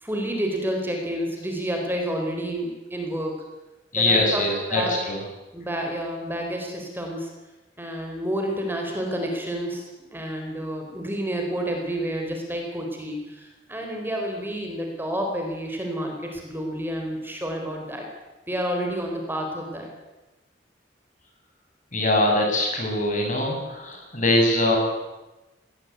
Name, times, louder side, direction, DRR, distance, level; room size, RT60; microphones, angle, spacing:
voice 1, 0.0-3.4 4.0-4.4 4.7-4.9 5.5-7.3 7.8-18.1 18.5-19.9, equal, 10° right, 2 dB, 4.2 m, -29 dB
voice 2, 3.9-5.2 21.9-24.8, left 1 dB, 45° left, 1 dB, 6.8 m, -22 dB
20.0 x 17.5 x 9.4 m, 1.1 s
head